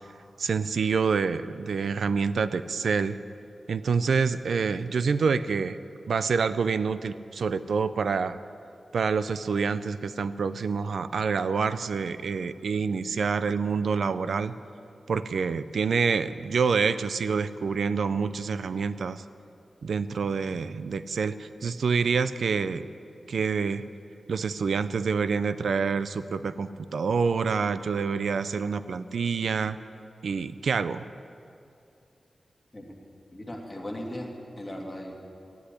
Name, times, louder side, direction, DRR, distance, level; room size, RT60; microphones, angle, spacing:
voice 1, 0.4-3.2 3.7-5.8 6.1-8.4 8.9-14.5 15.1-19.2 19.8-22.9 23.3-23.8 24.3-29.8 30.2-31.0, right 5 dB, 90° right, 13 dB, 0.4 m, -27 dB
voice 2, 33.3-35.1, left 1 dB, 15° left, -2 dB, 2.2 m, -38 dB
14.5 x 8.3 x 9.8 m, 2.6 s
wide cardioid pair, 145°, 0 cm